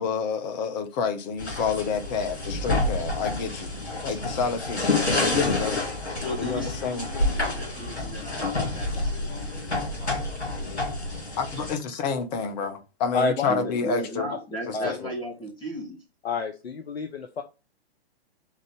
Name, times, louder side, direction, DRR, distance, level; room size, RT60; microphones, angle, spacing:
voice 1, 0.0-3.7 4.0-4.8 5.1-5.8 6.4-7.1 11.4-14.3 14.7-15.1, left 5 dB, 40° left, 1.2 m, -29 dB
sound 1, 1.4-11.8, left 2 dB, 90° left, 2.8 m, -28 dB
voice 2, 6.1-10.2 13.5-16.0, equal, 15° left, 2.4 m, -36 dB
voice 3, 13.1-14.0 14.7-15.0 16.2-17.4, left 4 dB, 70° left, 0.9 m, -29 dB
5.3 x 4.1 x 5.2 m
figure-of-eight pair, 115°, 32 cm